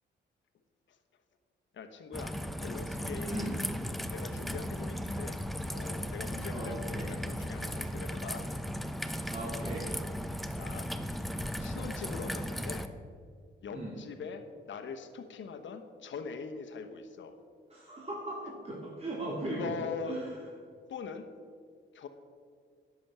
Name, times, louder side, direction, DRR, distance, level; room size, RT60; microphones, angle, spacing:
voice 1, 1.7-3.5 4.1-5.4 5.7-8.5 10.5-10.9 11.6-12.9 13.6-17.4 19.4-20.2 20.9-21.3 21.9-22.1, left 5 dB, 65° left, 7 dB, 1.1 m, -42 dB
Raindrop / Trickle dribble, 2.1-12.9, equal, ahead, 0.7 m, -36 dB
voice 2, 3.3-3.6 6.5-7.2 9.3-9.9 13.7-14.0 17.7-19.8 20.1-20.3, right 1 dB, 30° right, -4 dB, 2.1 m, -38 dB
10.5 x 6.3 x 7.2 m, 2.1 s
supercardioid pair, 60°, 21 cm